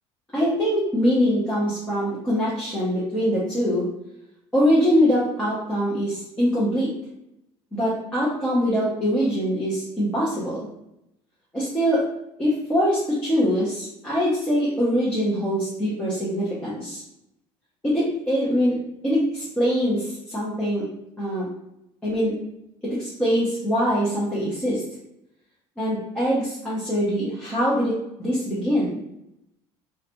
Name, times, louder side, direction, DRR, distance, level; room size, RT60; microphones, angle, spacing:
voice 1, 0.3-3.8 4.5-6.9 7.7-10.7 11.5-12.0 12.4-17.0 17.8-18.8 19.0-20.8 21.2-21.4 22.0-22.3 22.9-24.8 25.8-29.0, equal, 10° left, -10 dB, 0.5 m, -23 dB
2.5 x 2.1 x 2.8 m, 0.83 s
cardioid pair, 180°, 11 cm